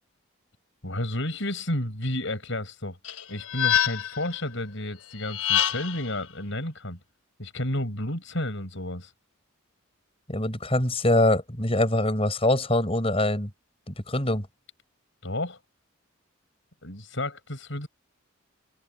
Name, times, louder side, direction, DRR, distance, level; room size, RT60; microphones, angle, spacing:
voice 1, 0.8-3.0 3.3-7.0 7.4-9.1 15.2-15.6 16.8-17.9, left 1 dB, 60° left, 7.0 m, -31 dB
sound 1, 3.0-4.3 5.2-6.1, left 11 dB, 85° left, 3.8 m, -26 dB
voice 2, 10.3-13.5 13.9-14.5, left 1 dB, 25° left, 6.0 m, -24 dB
open air
head